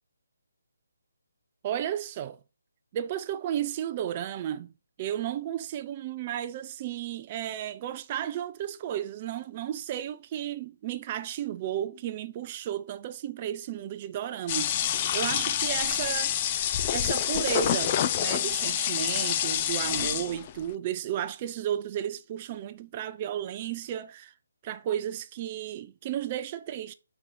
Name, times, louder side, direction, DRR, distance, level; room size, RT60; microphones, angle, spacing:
voice 1, 1.6-2.4 2.9-4.7 5.0-14.8 15.1-16.5 16.9-24.3 24.6-26.9, right 10 dB, 30° right, 0.4 m, -33 dB
sound 1, 14.5-20.6, left 10 dB, 30° left, 0.4 m, -27 dB
4.5 x 4.3 x 5.0 m
figure-of-eight pair, 150°, 0 cm